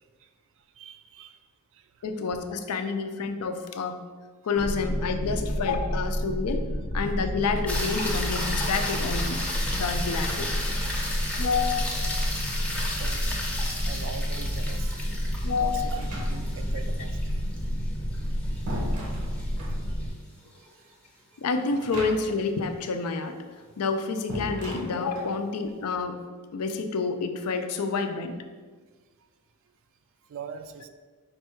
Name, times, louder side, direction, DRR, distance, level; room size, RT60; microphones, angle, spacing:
voice 1, 0.8-1.4 1.7-2.1 12.9-13.3 13.8-15.1 15.6-17.2 18.5-18.6 20.6-20.9 30.3-30.9, right 6 dB, 60° right, 9 dB, 0.3 m, -42 dB
voice 2, 2.0-4.0 4.4-6.6 6.9-9.4 9.7-10.5 11.4-12.2 15.4-15.9 21.4-23.4 23.8-26.2 26.5-28.4, left 4 dB, 85° left, 7 dB, 0.4 m, -29 dB
sound 1, 4.6-20.1, equal, 30° left, 0.8 m, -30 dB
sound 2, 7.7-20.1 24.5-24.6, left 1 dB, 5° left, 0.5 m, -34 dB
sound 3, 15.9-16.7 18.0-19.8 21.7-22.5 22.8-22.9 24.3-25.4, equal, 80° right, 0.8 m, -37 dB
5.2 x 2.3 x 4.3 m, 1.4 s
head